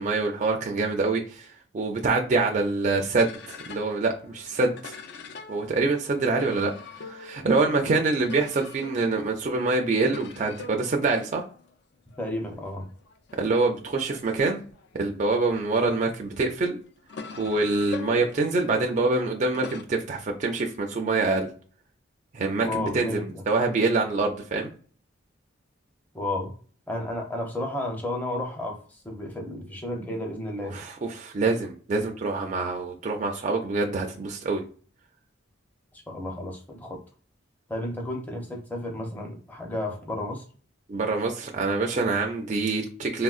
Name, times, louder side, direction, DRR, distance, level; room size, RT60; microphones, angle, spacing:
voice 1, 0.0-4.9 5.5-6.7 7.0-11.4 13.4-14.6 14.9-16.8 17.4-21.5 22.3-24.7 30.7-34.6 40.9-43.2, right 3 dB, 35° right, 2 dB, 0.4 m, -25 dB
sound 1, 3.1-15.7 16.4-19.8, left 5 dB, 55° left, 0.3 m, -44 dB
voice 2, 12.2-12.9 22.6-23.4 26.1-26.5 26.9-30.8 36.1-37.0 37.7-40.4, left 1 dB, 10° left, 2 dB, 0.6 m, -32 dB
3.6 x 2.0 x 2.4 m, 0.43 s
head